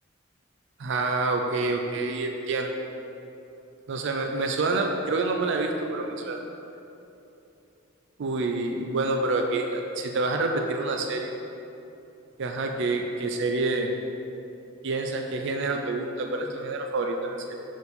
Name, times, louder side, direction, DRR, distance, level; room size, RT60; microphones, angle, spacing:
voice 1, 0.8-2.7 3.9-6.4 8.2-11.3 12.4-14.0 14.8-17.6, right 3 dB, 60° right, 3 dB, 0.4 m, -27 dB
6.8 x 4.6 x 4.1 m, 2.9 s
head